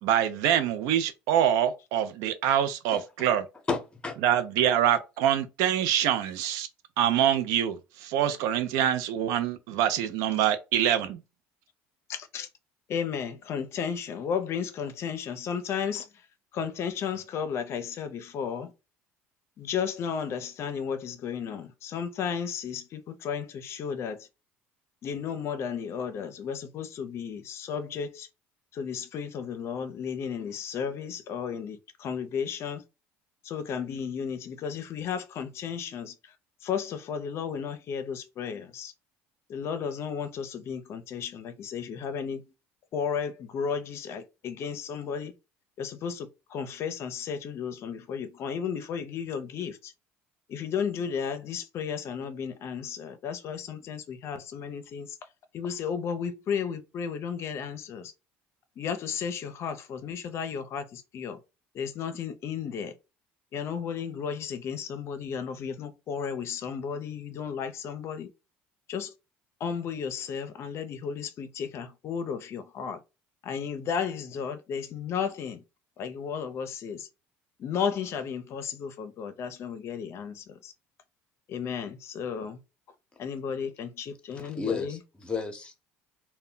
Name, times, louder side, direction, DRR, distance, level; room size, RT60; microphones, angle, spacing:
voice 1, 0.0-3.5 4.2-6.7 7.0-11.2, right 10 dB, 75° right, 0.4 m, -25 dB
voice 2, 2.9-3.3 3.7-4.2 84.3-85.9, left 4 dB, 15° left, 0.7 m, -33 dB
voice 3, 12.1-12.5 12.9-16.1 16.5-18.7 19.6-24.3 25.0-28.3 28.7-32.8 33.4-36.1 36.6-38.9 39.5-42.5 42.9-45.3 45.8-49.9 50.5-55.1 55.5-58.1 58.8-61.4 61.7-62.9 63.5-68.3 68.9-69.1 69.6-73.0 73.4-75.6 76.0-77.1 77.6-80.7 81.5-82.6 83.2-85.0, left 7 dB, 50° left, 0.5 m, -33 dB
2.1 x 2.1 x 3.7 m
supercardioid pair, 95°, 6 cm